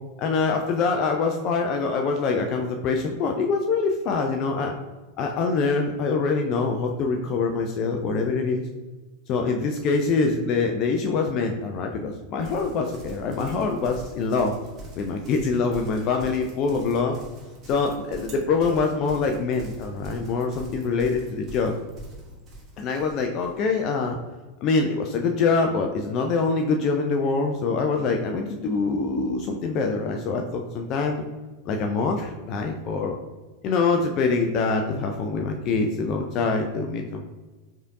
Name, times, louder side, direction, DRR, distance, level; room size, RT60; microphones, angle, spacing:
voice 1, 0.2-4.7 5.2-8.7 9.3-14.5 15.0-17.2 17.7-21.7 22.8-24.2 24.6-31.2 31.7-33.2 33.6-37.2, left 4 dB, 35° left, 3 dB, 0.4 m, -24 dB
Livestock farm animals working animals, 12.4-23.6, right 1 dB, 25° right, 1.1 m, -43 dB
4.8 x 2.7 x 2.6 m, 1.2 s
figure-of-eight pair, 90°, 0 cm